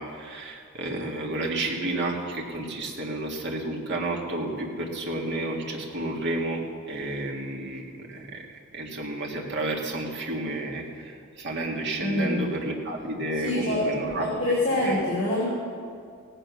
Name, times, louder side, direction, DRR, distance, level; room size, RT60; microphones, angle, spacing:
voice 1, 0.0-14.3 14.7-15.0, right 2 dB, 55° right, -1 dB, 2.0 m, -31 dB
voice 2, 12.0-12.4 13.4-15.5, left 1 dB, 35° left, -7 dB, 2.8 m, -26 dB
17.0 x 9.1 x 6.3 m, 2.2 s
head